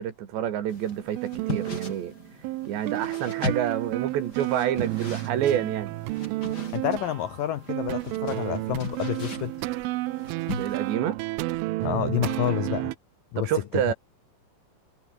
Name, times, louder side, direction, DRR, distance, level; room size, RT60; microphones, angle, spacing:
voice 1, 0.0-2.1 2.7-5.9 10.5-11.2 13.4-13.9, right 10 dB, 65° right, 4.2 m, -28 dB
sound 1, 0.7-10.9, left 3 dB, 20° left, 5.4 m, -39 dB
sound 2, 0.9-13.0, right 19 dB, 85° right, 3.3 m, -31 dB
voice 2, 6.7-9.5 11.8-12.9 13.3-13.5, left 12 dB, 80° left, 1.9 m, -28 dB
omnidirectional pair, 5.6 m